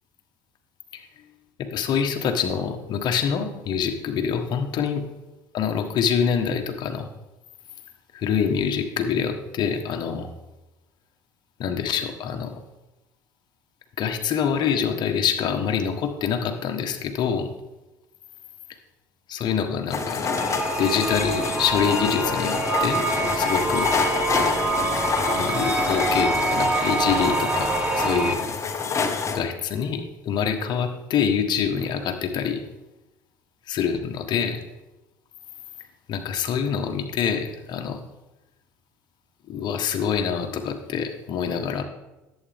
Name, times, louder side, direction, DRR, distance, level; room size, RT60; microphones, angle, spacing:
voice 1, 1.6-5.0 5.5-7.1 8.1-10.3 11.6-12.5 14.0-17.5 19.3-20.4 20.8-23.9 25.3-28.4 29.2-32.6 33.7-34.6 36.1-38.0 39.5-41.8, left 7 dB, 55° left, 5 dB, 1.4 m, -25 dB
sound 1, 19.9-29.4, left 5 dB, 35° left, 1.4 m, -27 dB
sound 2, 20.3-28.3, right 2 dB, 15° right, 1.4 m, -26 dB
11.0 x 8.3 x 3.6 m, 1.0 s
hypercardioid pair, 75°, 9 cm